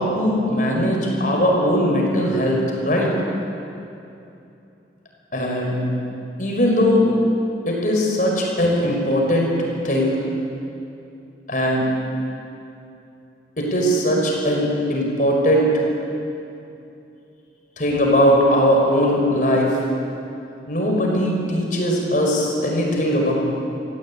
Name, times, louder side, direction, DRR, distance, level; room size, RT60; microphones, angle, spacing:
voice 1, 0.0-3.1 5.3-5.8 6.4-7.1 7.7-9.5 9.8-10.2 11.5-11.9 13.6-15.7 17.8-19.8 20.7-23.3, equal, 45° left, -1 dB, 5.3 m, -19 dB
27.5 x 16.0 x 8.8 m, 2.8 s
head